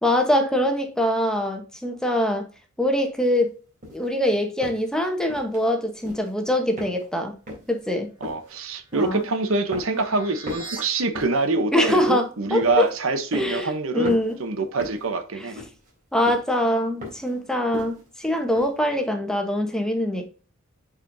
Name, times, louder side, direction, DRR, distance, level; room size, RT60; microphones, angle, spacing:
voice 1, 0.0-2.4 2.8-3.5 3.9-7.4 7.7-8.1 8.9-9.2 11.7-12.9 13.3-14.4 15.4-15.5 16.1-20.2, left 1 dB, 5° left, 1.0 m, -23 dB
sound 1, 3.8-4.1 4.6-4.9 5.3-5.6 6.0-6.4 6.8-7.2 7.5-7.7 8.2-8.5 8.9-9.4 9.7-10.1 10.4-11.4 11.9-12.2 12.6-12.9 13.3-13.7 14.0-14.3 14.8-15.1 15.6-16.0 16.3-16.5 17.0-17.3 17.7-18.1 18.6-18.7, left 2 dB, 40° right, 3.6 m, -37 dB
voice 2, 8.2-15.5, right 3 dB, 70° right, 0.9 m, -25 dB
sound 2, 8.6-10.8, right 3 dB, 25° right, 3.1 m, -43 dB
7.4 x 5.0 x 2.7 m
head